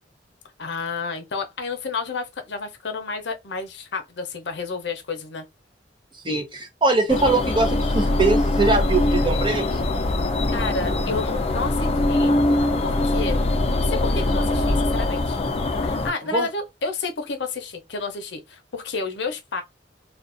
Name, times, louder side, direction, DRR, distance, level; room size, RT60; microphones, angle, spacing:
voice 1, 0.6-5.4 10.5-12.4 12.8-13.4 13.7-15.4 15.8-19.6, left 4 dB, 70° left, 0.6 m, -30 dB
voice 2, 6.2-9.6 16.3-16.5, right 3 dB, 25° right, 0.6 m, -22 dB
sound 1, 7.1-16.1, left 2 dB, 35° left, 0.4 m, -22 dB
2.5 x 2.2 x 2.4 m
head